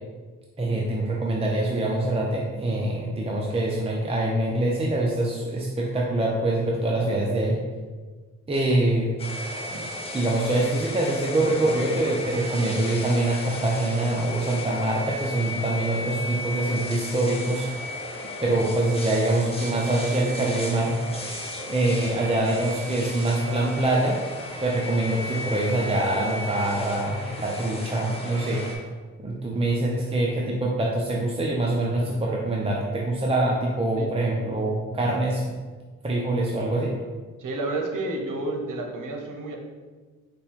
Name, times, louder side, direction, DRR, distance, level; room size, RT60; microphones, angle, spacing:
voice 1, 0.6-7.6 8.5-9.1 9.7-9.9 10.1-17.7 18.4-21.3 21.7-24.2 24.6-28.8 29.2-35.4 36.0-37.0, right 2 dB, 20° right, -3 dB, 0.6 m, -24 dB
sound 1, 9.2-28.7, left 1 dB, 20° left, 1.0 m, -35 dB
voice 2, 37.4-39.6, right 2 dB, 80° right, 2 dB, 0.8 m, -30 dB
5.2 x 2.3 x 4.4 m, 1.4 s
cardioid pair, 75°, 31 cm